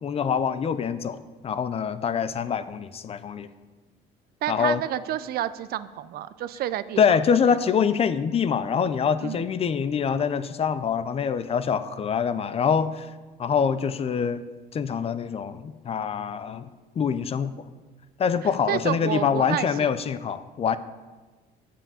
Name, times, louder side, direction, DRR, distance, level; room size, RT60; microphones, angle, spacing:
voice 1, 0.0-3.5 4.5-4.8 7.0-13.1 13.4-14.4 14.7-16.7 17.0-17.7 18.2-20.8, left 7 dB, 35° left, 13 dB, 0.5 m, -25 dB
voice 2, 4.4-7.0 9.2-9.4 18.7-19.9, right 12 dB, 65° right, 15 dB, 0.4 m, -29 dB
7.4 x 5.7 x 6.9 m, 1.3 s
cardioid pair, 110°, 17 cm